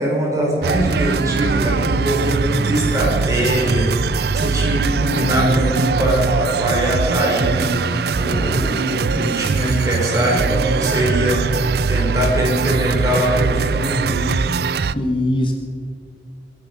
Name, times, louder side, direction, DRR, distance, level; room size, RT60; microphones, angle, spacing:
voice 1, 0.0-14.4, right 1 dB, 20° right, -2 dB, 4.5 m, -21 dB
sound 1, 0.6-14.9, right 5 dB, 60° right, 0.4 m, -21 dB
voice 2, 4.9-5.5 14.9-15.5, left 1 dB, 30° left, 3 dB, 1.2 m, -22 dB
22.0 x 11.0 x 5.3 m, 2.1 s
head